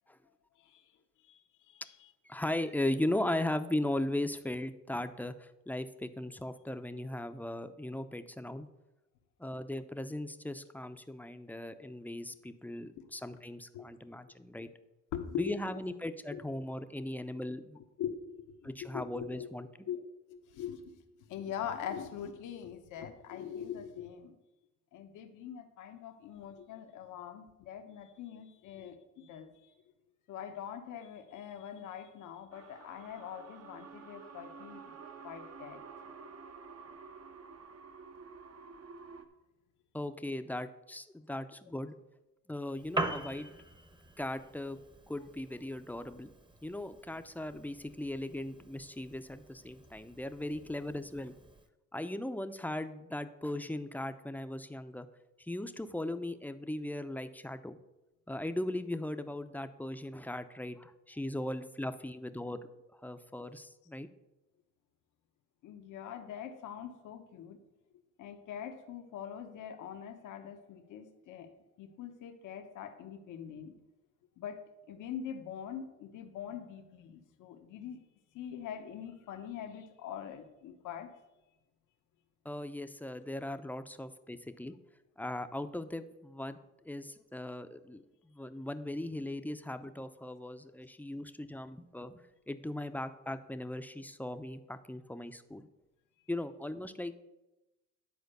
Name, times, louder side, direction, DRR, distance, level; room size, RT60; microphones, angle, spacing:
voice 1, 2.2-8.7 9.4-14.7 15.4-17.8 18.6-19.7 39.9-41.9 42.5-43.5 44.2-44.8 45.1-46.3 46.6-51.3 51.9-55.1 55.4-57.8 58.3-62.6 63.0-64.1 82.4-84.7 85.2-86.6 86.8-95.7 96.3-97.1, left 1 dB, 5° left, 9 dB, 0.6 m, -38 dB
voice 2, 15.1-15.5 16.3-16.4 18.0-19.5 19.9-20.0 20.3-20.9 21.3-24.3 24.9-29.7 30.3-35.0 35.2-35.8 65.6-67.6 68.2-71.5 71.8-73.7 74.4-74.6 74.9-78.0 78.3-81.1, left 9 dB, 85° left, 6 dB, 1.0 m, -43 dB
sound 1, 32.5-39.2, right 5 dB, 55° right, 0.9 m, -50 dB
Piano, 42.7-51.7, right 2 dB, 15° right, 0.9 m, -43 dB
10.5 x 4.4 x 6.6 m, 0.99 s
cardioid pair, 90°, 30 cm